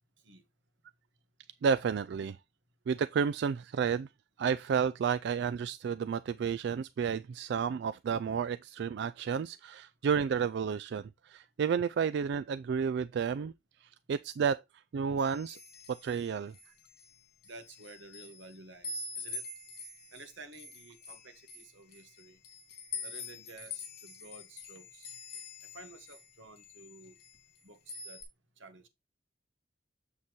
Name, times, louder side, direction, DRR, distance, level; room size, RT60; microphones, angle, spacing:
voice 1, 1.6-2.4 2.9-4.1 4.4-13.5 13.8-14.6 14.9-15.6 15.9-16.5, right 6 dB, 65° right, 0.3 m, -31 dB
sound 1, 15.2-17.1 17.4-18.5 18.8-26.3 26.6-27.6 27.9-28.2, left 4 dB, 55° left, 3.2 m, -45 dB
voice 2, 17.5-19.4 20.1-22.4 23.0-25.1 25.7-27.1 27.6-27.8 28.0-28.2 28.6-28.9, right 3 dB, 85° right, 1.5 m, -52 dB
7.1 x 6.6 x 3.0 m
head